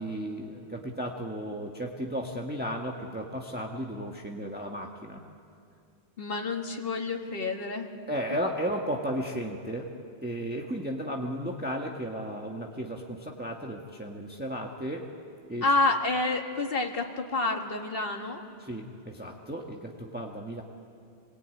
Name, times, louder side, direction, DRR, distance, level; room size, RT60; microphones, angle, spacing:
voice 1, 0.0-5.2 8.1-9.9 10.2-15.1 15.5-15.6 18.6-20.6, equal, 10° right, 0 dB, 1.4 m, -34 dB
voice 2, 6.2-7.9 15.6-18.4, left 3 dB, 60° left, 3 dB, 2.0 m, -28 dB
26.5 x 22.0 x 9.3 m, 2.4 s
omnidirectional pair, 1.1 m